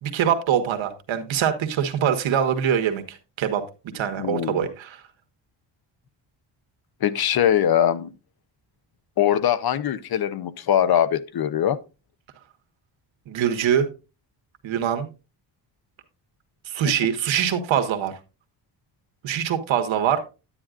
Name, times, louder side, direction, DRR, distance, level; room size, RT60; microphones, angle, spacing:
voice 1, 0.0-3.6 3.9-5.0 13.3-13.9 14.6-15.1 16.7-18.1 19.2-20.2, right 9 dB, 80° right, 1.5 m, -23 dB
voice 2, 4.2-4.6 7.0-8.1 9.2-11.8, left 10 dB, 55° left, 0.8 m, -22 dB
10.0 x 9.9 x 2.5 m
wide cardioid pair, 140°, 46 cm